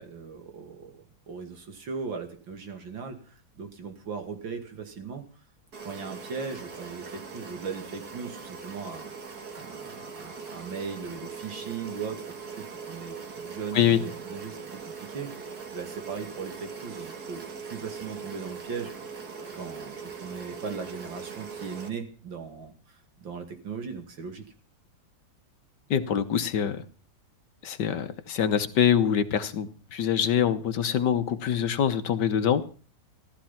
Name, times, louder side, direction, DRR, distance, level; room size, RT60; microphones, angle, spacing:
voice 1, 0.0-5.2 5.8-9.1 9.5-13.2 13.4-18.9 19.5-24.5, right 5 dB, 75° right, 6 dB, 3.0 m, -38 dB
sound 1, 5.7-21.9, right 5 dB, 50° right, 2.3 m, -41 dB
voice 2, 25.9-26.8 27.6-32.7, left 8 dB, 65° left, 11 dB, 1.6 m, -24 dB
15.5 x 13.5 x 5.8 m, 0.40 s
omnidirectional pair, 2.1 m